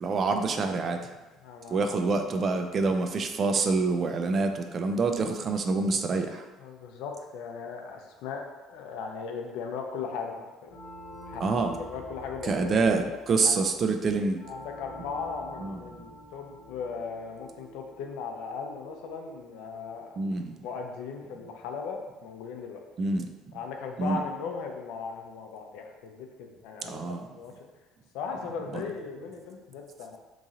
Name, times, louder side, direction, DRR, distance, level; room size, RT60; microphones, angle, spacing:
voice 1, 0.0-1.0 1.7-6.4 11.4-11.7 12.4-14.4 15.6-15.8 20.2-20.5 23.0-23.3 24.0-24.2 26.8-27.2 28.7-28.8, right 3 dB, 40° right, 6 dB, 0.4 m, -26 dB
voice 2, 1.4-1.9 6.6-10.8 11.3-11.4 11.8-12.9 13.4-13.6 14.5-20.2 20.6-22.8 23.5-27.5 28.1-30.2, left 5 dB, 80° left, 3 dB, 0.5 m, -38 dB
sound 1, 10.7-21.1, left 1 dB, 25° left, 0.9 m, -48 dB
3.0 x 2.7 x 3.7 m, 1.1 s
supercardioid pair, 90°, 0 cm